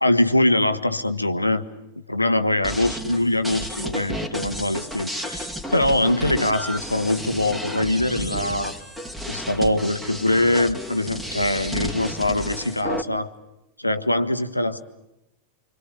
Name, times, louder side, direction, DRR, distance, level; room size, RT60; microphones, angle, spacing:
voice 1, 0.0-1.6 2.1-8.8 9.3-13.3 13.8-14.8, left 1 dB, 85° left, 10 dB, 1.3 m, -23 dB
sound 1, 2.6-13.0, equal, 10° right, 2.9 m, -32 dB
26.0 x 26.0 x 8.4 m, 0.90 s
figure-of-eight pair, 90°, 0 cm